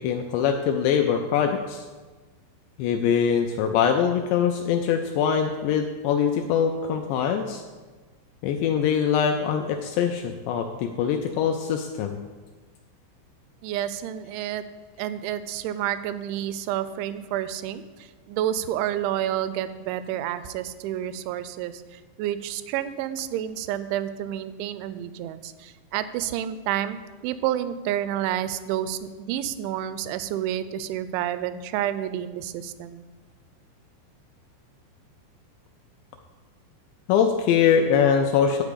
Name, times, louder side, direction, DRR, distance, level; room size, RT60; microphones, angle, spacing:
voice 1, 0.0-1.8 2.8-7.6 8.4-12.2 37.1-38.6, left 7 dB, 80° left, 4 dB, 2.6 m, -23 dB
voice 2, 13.6-14.6 15.0-33.0, right 11 dB, 85° right, 13 dB, 2.8 m, -29 dB
11.5 x 4.8 x 8.3 m, 1.4 s
omnidirectional pair, 5.5 m